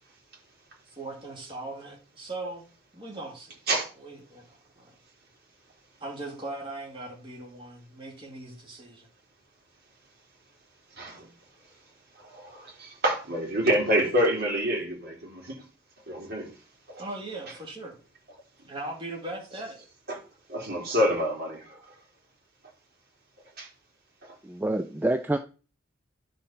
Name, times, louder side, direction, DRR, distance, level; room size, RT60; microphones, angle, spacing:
voice 1, 1.0-2.6 2.9-3.5 4.0-4.5 4.8-4.9 6.0-9.1 17.0-17.9 18.7-19.8, right 2 dB, 25° right, -2 dB, 2.4 m, -39 dB
voice 2, 11.0-11.3 12.2-15.6 16.1-16.5 16.9-17.0 20.1-20.2 20.5-21.8 23.6-23.7 24.2-24.3, equal, 50° right, -2 dB, 3.4 m, -27 dB
voice 3, 24.4-25.4, right 1 dB, 10° right, 7 dB, 0.3 m, -27 dB
10.5 x 4.2 x 5.7 m, 0.37 s
head